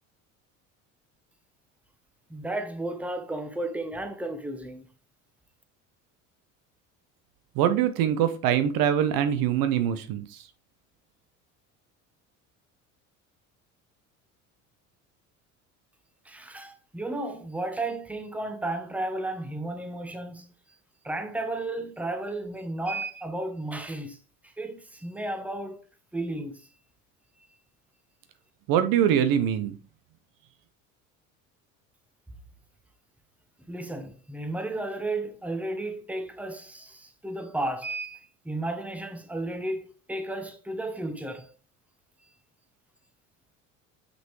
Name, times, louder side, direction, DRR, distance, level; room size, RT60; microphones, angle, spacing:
voice 1, 2.3-4.9 16.2-20.5 21.0-24.2 24.4-25.8 26.1-26.7 33.7-41.5, right 2 dB, 5° right, 1.1 m, -33 dB
voice 2, 7.5-10.5 28.7-29.8, right 9 dB, 65° right, 0.8 m, -23 dB
6.0 x 5.3 x 3.2 m
supercardioid pair, 85°, 38 cm